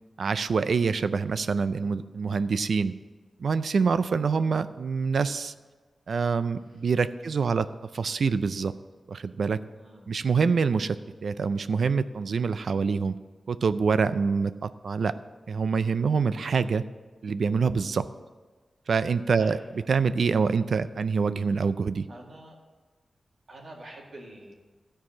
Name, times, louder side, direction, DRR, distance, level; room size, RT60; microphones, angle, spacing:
voice 1, 0.2-2.9 3.4-5.5 6.1-7.7 7.9-8.7 9.1-9.6 10.1-11.0 11.2-13.2 13.5-15.1 15.5-16.8 17.2-18.1 18.9-19.6 19.9-22.1, right 5 dB, 70° right, 13 dB, 0.4 m, -25 dB
voice 2, 9.7-10.1 19.4-19.6 22.1-22.6 23.5-24.5, right 1 dB, 55° right, -1 dB, 2.1 m, -46 dB
13.0 x 4.7 x 7.2 m, 1.3 s
wide cardioid pair, 100°, 0 cm